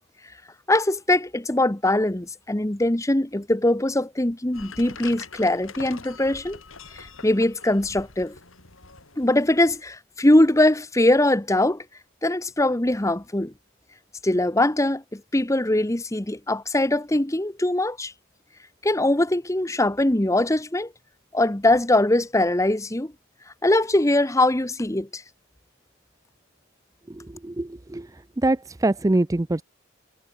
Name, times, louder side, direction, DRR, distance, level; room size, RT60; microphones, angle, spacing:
voice 1, 0.7-6.6 7.0-8.4 9.2-11.8 12.2-13.5 14.2-18.1 18.8-20.9 21.3-23.1 23.6-25.2, left 1 dB, 15° left, 1.0 m, -22 dB
sound 1, 4.5-9.8, left 4 dB, 85° left, 4.1 m, -44 dB
voice 2, 27.1-28.1 28.4-29.6, right 2 dB, 15° right, 0.5 m, -24 dB
head